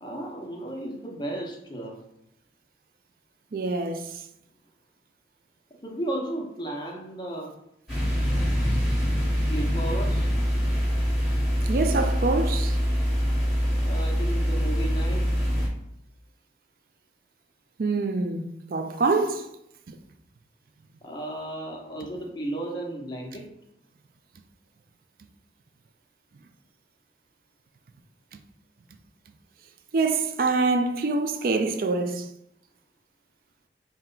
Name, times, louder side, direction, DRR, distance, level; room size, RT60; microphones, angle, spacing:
voice 1, 0.0-2.0 5.8-7.5 9.5-10.3 13.9-15.5 21.0-23.5, right 1 dB, 25° left, 0.7 m, -34 dB
voice 2, 3.5-4.2 11.6-12.8 17.8-19.5 19.9-20.0 29.9-32.3, right 3 dB, 50° right, 0.4 m, -25 dB
sound 1, 7.9-15.7, equal, ahead, 1.1 m, -24 dB
4.3 x 2.2 x 3.8 m
head